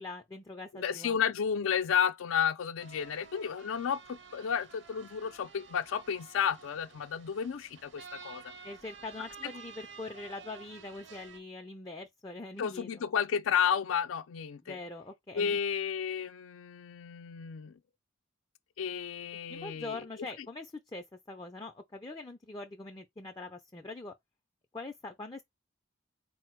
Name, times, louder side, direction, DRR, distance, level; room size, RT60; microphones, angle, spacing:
voice 1, 0.0-1.2 8.6-13.1 14.7-15.6 19.5-24.1 24.7-25.4, left 3 dB, 20° left, 0.4 m, -43 dB
voice 2, 0.7-8.4 9.4-9.5 12.6-14.8 15.3-17.8 18.8-20.0, left 7 dB, 85° left, 0.4 m, -32 dB
sound 1, 2.8-11.4, right 5 dB, 60° right, 0.6 m, -52 dB
4.2 x 2.0 x 4.4 m
head